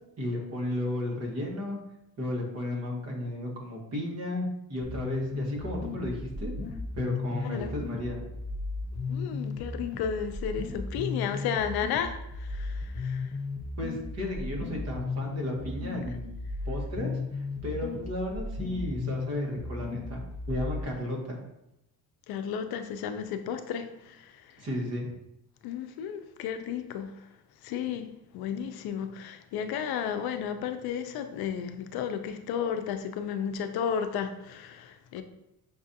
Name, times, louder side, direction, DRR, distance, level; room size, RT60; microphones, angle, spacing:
voice 1, 0.2-1.8 2.2-6.5 6.9-8.2 13.8-16.3 16.6-21.4 24.6-25.1, left 1 dB, 40° right, -1 dB, 1.2 m, -34 dB
sound 1, 4.8-20.8, left 3 dB, 30° left, 0.5 m, -35 dB
voice 2, 9.1-13.3 14.2-14.3 22.3-24.5 25.6-27.1 27.6-35.2, left 8 dB, 80° left, 9 dB, 0.5 m, -33 dB
6.0 x 2.4 x 2.7 m, 0.87 s
cardioid pair, 125°, 37 cm